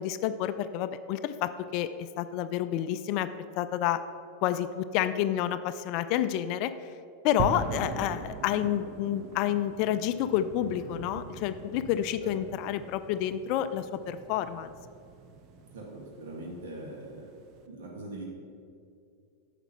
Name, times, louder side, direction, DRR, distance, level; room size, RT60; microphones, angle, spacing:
voice 1, 0.0-3.3 3.6-4.0 4.4-6.7 7.2-14.7, left 11 dB, 45° left, 12 dB, 0.3 m, -29 dB
sound 1, 7.4-17.7, right 4 dB, 40° right, 0.7 m, -41 dB
voice 2, 15.7-17.3 17.7-18.3, right 2 dB, 60° right, 0 dB, 1.4 m, -41 dB
8.9 x 5.9 x 5.7 m, 2.4 s
figure-of-eight pair, 90°, 0 cm